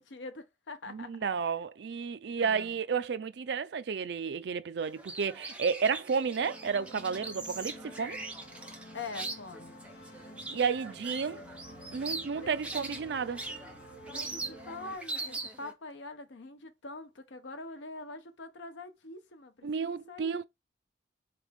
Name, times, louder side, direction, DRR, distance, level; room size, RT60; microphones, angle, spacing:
voice 1, 0.0-1.2 2.3-2.8 8.9-9.8 12.4-12.5 14.1-20.4, left 3 dB, 85° left, 0.8 m, -44 dB
voice 2, 0.9-8.2 10.5-11.4 11.9-13.4 19.6-20.4, right 6 dB, 65° right, 0.4 m, -32 dB
sound 1, 4.8-15.7, right 2 dB, 5° right, 0.6 m, -41 dB
sound 2, 6.4-15.0, equal, 65° left, 1.8 m, -50 dB
sound 3, 6.6-15.6, equal, 45° left, 1.4 m, -61 dB
4.0 x 3.4 x 3.4 m
head